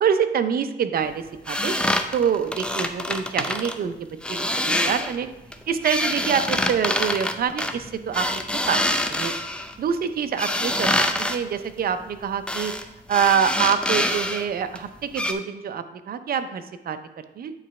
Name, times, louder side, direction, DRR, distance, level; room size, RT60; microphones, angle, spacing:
voice 1, 0.0-1.7 2.1-5.3 5.7-8.4 8.7-8.8 9.1-9.3 9.8-12.7 13.1-17.5, right 7 dB, 50° right, 9 dB, 0.6 m, -26 dB
sound 1, 1.5-3.7 4.2-5.2 5.5-9.7 10.4-11.4 12.5-12.8 13.1-14.4 14.7-14.8 15.1-15.3, left 1 dB, 5° left, 0.5 m, -25 dB
9.0 x 3.1 x 4.2 m, 0.95 s
cardioid pair, 90°, 20 cm